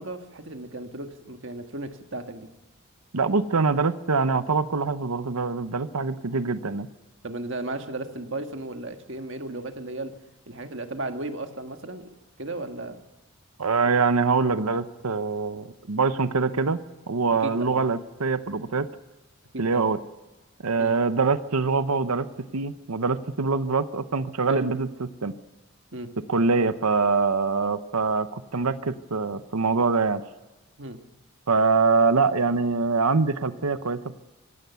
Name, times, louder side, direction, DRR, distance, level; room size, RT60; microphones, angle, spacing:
voice 1, 0.0-2.5 7.2-10.1 10.5-12.1 12.4-13.0 17.4-17.8 19.5-19.9 20.8-20.9 24.5-24.7 25.9-26.1 30.8-31.0, right 2 dB, 55° right, 6 dB, 1.6 m, -35 dB
voice 2, 3.1-6.9 13.6-16.8 17.1-18.9 19.6-20.0 20.6-22.3 22.5-24.9 25.2-25.3 26.3-30.2 31.5-34.2, right 4 dB, 85° right, 11 dB, 0.9 m, -24 dB
25.5 x 16.5 x 7.0 m, 1.2 s
head